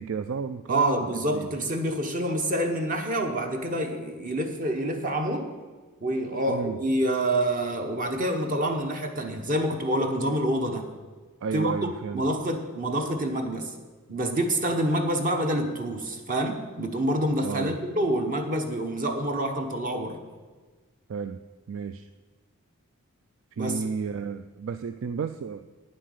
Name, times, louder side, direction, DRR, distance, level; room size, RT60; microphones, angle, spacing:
voice 1, 0.0-1.5 6.5-6.8 11.4-12.2 17.4-17.8 21.1-21.4 21.7-22.1 23.5-25.6, right 5 dB, 60° right, 10 dB, 0.3 m, -32 dB
voice 2, 0.7-5.5 6.0-10.9 11.5-11.7 12.1-13.7 14.1-20.2 23.6-23.8, right 1 dB, 35° right, 5 dB, 1.0 m, -27 dB
9.4 x 7.6 x 6.5 m, 1.4 s
head